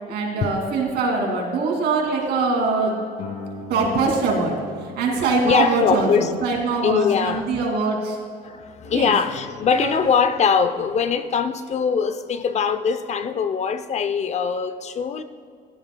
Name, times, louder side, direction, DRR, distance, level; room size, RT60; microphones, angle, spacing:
voice 1, 0.1-3.0 3.7-4.5 5.0-8.2 8.8-9.1 9.7-10.0, right 3 dB, 75° right, 0 dB, 2.6 m, -23 dB
Guitar, 3.2-8.5, left 4 dB, 60° left, 2.0 m, -40 dB
voice 2, 5.4-6.3 6.8-7.6 8.4-15.2, left 6 dB, 40° left, 11 dB, 0.6 m, -22 dB
16.0 x 12.5 x 2.3 m, 2.2 s
cardioid pair, 110°, 17 cm